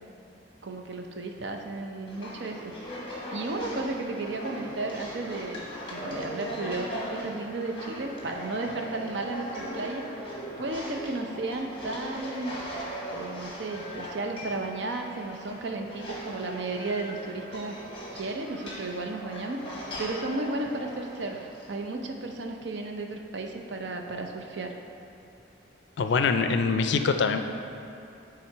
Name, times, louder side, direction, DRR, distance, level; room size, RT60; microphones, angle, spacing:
voice 1, 0.6-2.7 3.3-10.0 10.6-12.6 13.1-17.8 18.1-19.6 20.0-24.7, right 2 dB, 70° right, 3 dB, 0.6 m, -34 dB
sound 1, 2.1-21.7, equal, 25° left, 1.2 m, -39 dB
voice 2, 26.0-27.5, left 5 dB, 70° left, 7 dB, 0.4 m, -24 dB
8.7 x 3.7 x 4.5 m, 2.7 s
head